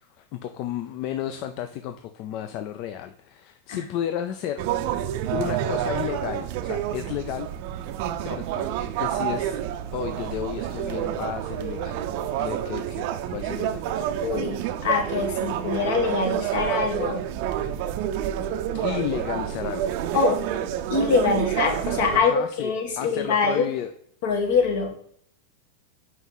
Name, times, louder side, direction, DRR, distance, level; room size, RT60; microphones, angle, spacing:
voice 1, 0.0-4.7 5.3-7.5 8.2-8.7 9.0-9.6 9.9-12.0 12.4-14.1 18.8-19.9 22.1-23.9, left 11 dB, 50° left, 8 dB, 0.4 m, -32 dB
sound 1, 4.6-22.2, right 10 dB, 55° right, 0.5 m, -28 dB
voice 2, 14.2-17.2 18.7-18.8 20.1-20.4 20.9-23.6 24.2-24.9, left 5 dB, 70° left, 3 dB, 1.6 m, -24 dB
5.5 x 3.1 x 5.5 m, 0.63 s
supercardioid pair, 130°, 0 cm